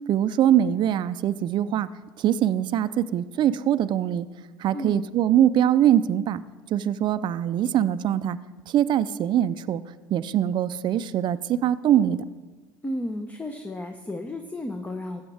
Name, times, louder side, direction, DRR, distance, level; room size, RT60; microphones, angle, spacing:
voice 1, 0.1-1.9 2.2-4.3 4.6-6.4 6.7-8.4 8.7-9.8 10.1-12.2, right 10 dB, 45° right, 13 dB, 0.4 m, -22 dB
voice 2, 12.8-15.2, left 1 dB, 15° left, 5 dB, 0.8 m, -33 dB
14.5 x 8.7 x 3.4 m, 1.3 s
hypercardioid pair, 85°, 11 cm